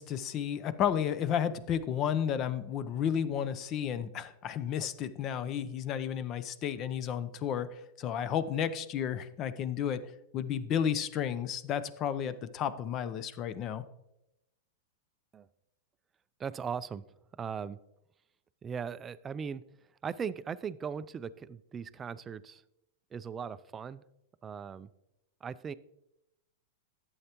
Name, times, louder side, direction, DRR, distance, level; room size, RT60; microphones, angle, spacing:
voice 1, 0.0-10.0 10.3-13.8, left 9 dB, 35° left, 15 dB, 0.6 m, -32 dB
voice 2, 16.4-17.0 17.4-17.8 18.6-19.6 20.0-22.6 23.1-24.0 24.4-24.9 25.4-25.7, right 6 dB, 20° right, 16 dB, 0.3 m, -38 dB
11.0 x 7.9 x 2.9 m, 0.86 s
hypercardioid pair, 125°, 0 cm